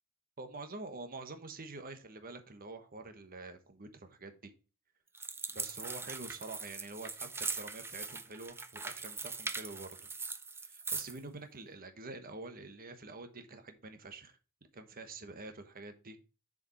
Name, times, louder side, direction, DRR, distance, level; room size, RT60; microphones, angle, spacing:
voice 1, 0.4-4.5 5.5-9.9 10.6-14.4 14.7-16.2, right 3 dB, 40° right, 1.2 m, -47 dB
sound 1, 5.1-11.2, right 4 dB, 10° right, 0.5 m, -41 dB
6.8 x 5.0 x 4.4 m
head